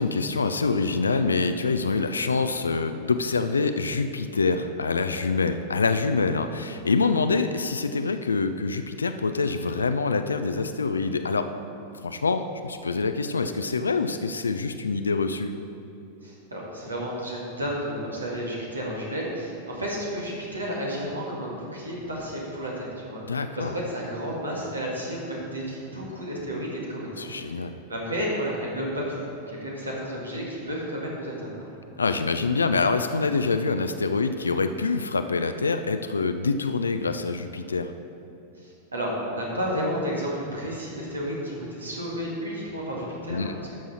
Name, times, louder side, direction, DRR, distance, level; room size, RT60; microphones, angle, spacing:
voice 1, 0.0-11.5 12.0-15.5 23.2-23.7 27.2-27.8 32.0-37.9 43.3-43.6, left 4 dB, 75° left, 9 dB, 0.4 m, -25 dB
voice 2, 16.2-31.8 38.6-43.8, equal, 80° right, -3 dB, 1.9 m, -32 dB
12.0 x 6.2 x 4.2 m, 2.7 s
figure-of-eight pair, 90°, 0 cm